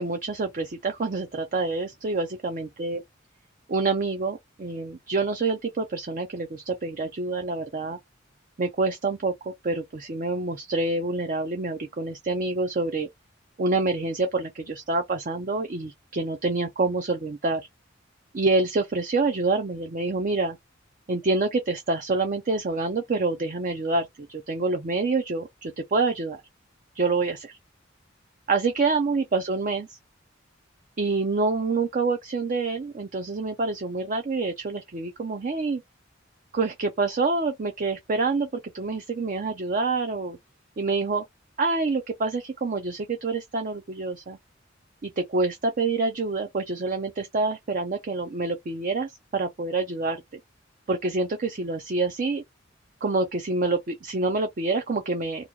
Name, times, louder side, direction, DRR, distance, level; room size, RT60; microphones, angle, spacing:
voice 1, 0.0-3.0 3.7-8.0 8.6-13.1 13.6-17.6 18.3-20.6 21.1-26.4 26.9-27.6 28.5-30.0 31.0-35.8 36.5-40.4 40.8-41.2 41.6-44.4 45.0-50.2 50.9-52.4 53.0-55.5, right 3 dB, 45° right, 0.5 m, -27 dB
2.9 x 2.3 x 3.7 m
head